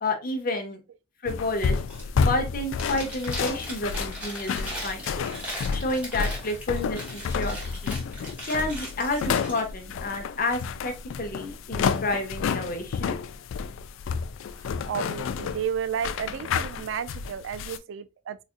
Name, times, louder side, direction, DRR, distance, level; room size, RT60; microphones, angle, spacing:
voice 1, 0.0-0.8 1.2-1.8 2.3-5.2 5.7-8.0 8.5-10.9 11.2-13.1, left 2 dB, 45° left, 0.8 m, -30 dB
sound 1, 1.3-17.8, left 6 dB, 75° left, 0.3 m, -30 dB
Chewing mastication, 1.8-2.3 2.6-9.6, equal, 5° right, 1.0 m, -39 dB
voice 2, 14.5-18.4, right 8 dB, 70° right, 0.3 m, -32 dB
4.1 x 2.5 x 2.4 m
head